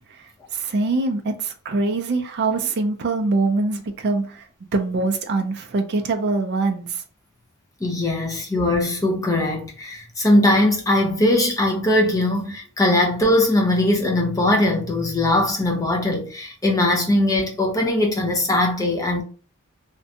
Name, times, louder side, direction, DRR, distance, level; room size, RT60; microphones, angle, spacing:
voice 1, 0.5-4.5 4.7-7.0, right 3 dB, 50° right, 0.4 m, -23 dB
voice 2, 7.8-19.2, left 1 dB, 15° left, 0.5 m, -20 dB
2.5 x 2.2 x 2.6 m
head